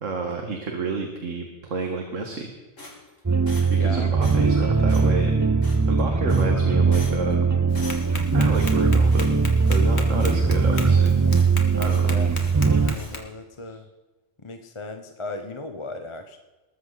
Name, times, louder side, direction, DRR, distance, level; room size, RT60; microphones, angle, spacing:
voice 1, 0.0-2.5 3.7-5.3 5.9-7.5 8.3-9.4 9.7-11.1 11.8-12.2, right 4 dB, 80° right, 3 dB, 2.0 m, -30 dB
sound 1, 2.8-3.9 4.2-4.6 4.9-5.1 5.6-6.0 6.3-6.6 6.9-7.3 7.7-8.2 8.5-9.4 9.6-9.9 10.2-11.0 11.3-11.5 11.8-12.6 12.9-13.2, left 2 dB, 80° left, 4.0 m, -43 dB
sound 2, 3.3-13.0, right 4 dB, 30° right, 0.3 m, -20 dB
voice 2, 3.7-4.2 12.0-12.3 12.8-13.9 14.4-16.4, left 2 dB, 25° left, 6 dB, 0.9 m, -37 dB
Tap, 7.7-13.2, left 3 dB, 60° left, 2.0 m, -38 dB
21.0 x 13.5 x 4.0 m, 1.2 s
omnidirectional pair, 1.3 m